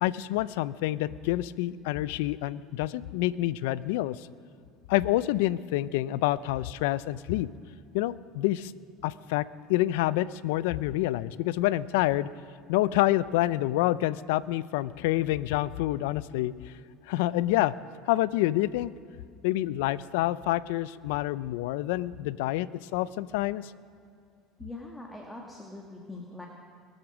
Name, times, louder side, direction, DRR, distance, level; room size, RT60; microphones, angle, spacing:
voice 1, 0.0-4.3 4.9-7.5 7.9-8.7 9.0-9.4 9.7-12.3 12.7-16.7 17.1-17.7 18.1-18.9 19.4-23.7, left 16 dB, 85° left, 18 dB, 0.4 m, -27 dB
voice 2, 24.6-26.5, left 2 dB, 5° left, -1 dB, 1.8 m, -42 dB
22.5 x 7.9 x 6.3 m, 2.4 s
supercardioid pair, 110°, 0 cm